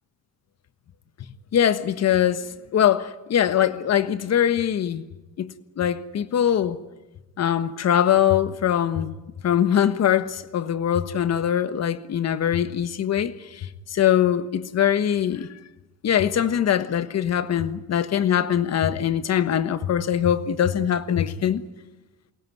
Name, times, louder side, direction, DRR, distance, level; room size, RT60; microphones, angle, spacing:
voice 1, 1.5-5.0 5.4-6.8 7.4-9.2 9.4-15.5 16.0-21.6, left 9 dB, 45° left, 1.3 m, -22 dB
22.5 x 18.0 x 9.5 m
cardioid pair, 100°, 35 cm